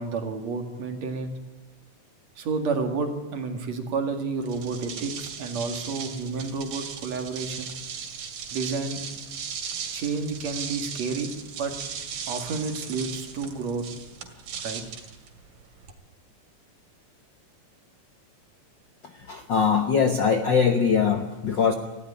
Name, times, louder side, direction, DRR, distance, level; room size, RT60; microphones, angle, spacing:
voice 1, 0.0-1.3 2.4-7.7 8.5-9.0 9.9-11.3 11.6-11.7 12.3-13.9 14.6-14.8, right 4 dB, 60° right, 6 dB, 3.3 m, -30 dB
sound 1, 4.4-15.9, right 7 dB, 85° right, 3.8 m, -37 dB
voice 2, 19.3-21.7, left 6 dB, 60° left, 7 dB, 1.2 m, -22 dB
19.0 x 15.5 x 9.9 m, 1.1 s
omnidirectional pair, 3.6 m